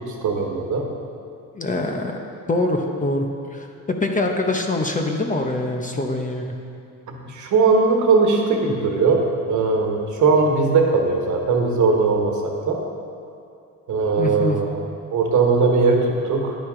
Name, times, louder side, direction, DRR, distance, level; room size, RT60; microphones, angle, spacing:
voice 1, 0.2-0.9 7.1-12.8 13.9-14.8 15.1-16.6, right 4 dB, 55° right, 2 dB, 1.4 m, -19 dB
voice 2, 1.6-2.2 2.5-6.6 14.2-14.6, left 2 dB, 20° left, 3 dB, 0.8 m, -24 dB
10.0 x 9.4 x 3.8 m, 2.5 s
cardioid pair, 95°, 35 cm